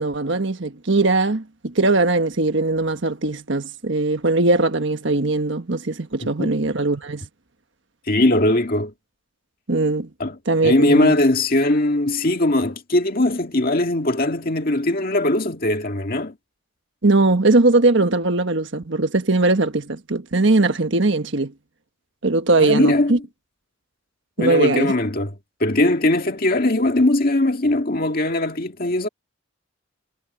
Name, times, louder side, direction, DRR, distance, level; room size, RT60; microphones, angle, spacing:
voice 1, 0.0-7.3 9.7-10.1 10.5-11.1 17.0-21.5 22.2-23.2 24.4-24.9, right 2 dB, 60° right, 1.4 m, -20 dB
voice 2, 6.2-6.5 8.1-8.9 10.2-10.4 10.6-16.4 22.6-23.2 24.4-25.3 25.6-29.1, left 1 dB, 45° left, 2.0 m, -20 dB
head